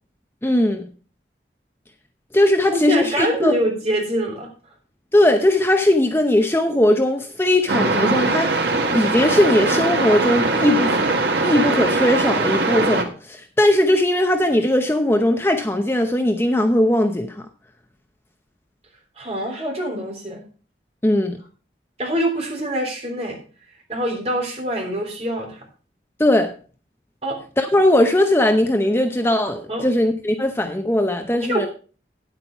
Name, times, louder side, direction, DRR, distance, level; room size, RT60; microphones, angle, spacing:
voice 1, 0.4-0.9 2.3-3.5 5.1-11.1 11.4-17.5 21.0-21.4 26.2-26.5 27.6-31.7, left 1 dB, 15° left, 5 dB, 0.7 m, -19 dB
voice 2, 2.7-4.5 19.2-20.4 22.0-23.4 23.9-25.6 27.2-27.4 29.7-29.8 31.4-31.7, right 1 dB, 35° right, 0 dB, 3.4 m, -24 dB
sound 1, 7.7-13.0, right 3 dB, 70° right, 1.5 m, -21 dB
9.7 x 8.2 x 4.7 m, 0.39 s
head